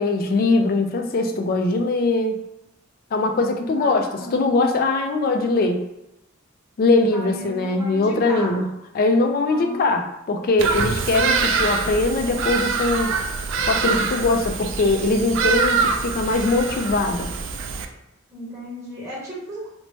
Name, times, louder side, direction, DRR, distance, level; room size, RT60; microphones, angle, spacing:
voice 1, 0.0-2.4 3.1-5.8 6.8-8.7 8.9-13.1 13.7-17.3, left 3 dB, 45° left, 5 dB, 0.3 m, -21 dB
voice 2, 3.3-4.4 7.1-8.6 9.5-9.9 18.3-19.7, equal, 15° right, -8 dB, 1.2 m, -35 dB
Bird vocalization bird call bird song, 10.6-17.9, right 5 dB, 65° right, 0.3 m, -24 dB
3.0 x 2.1 x 2.7 m, 0.86 s
head